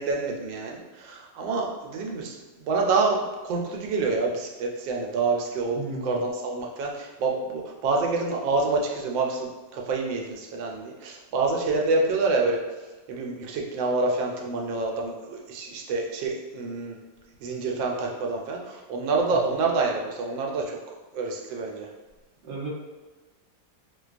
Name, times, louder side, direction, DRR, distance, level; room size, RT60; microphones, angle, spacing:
voice 1, 0.0-12.6 13.1-17.0 17.4-20.8 21.1-21.9, right 3 dB, 85° right, 0 dB, 1.3 m, -27 dB
voice 2, 5.7-6.2 19.3-19.4 22.4-22.7, right 2 dB, 50° right, -5 dB, 0.6 m, -35 dB
4.4 x 2.2 x 2.4 m, 1.3 s
omnidirectional pair, 2.0 m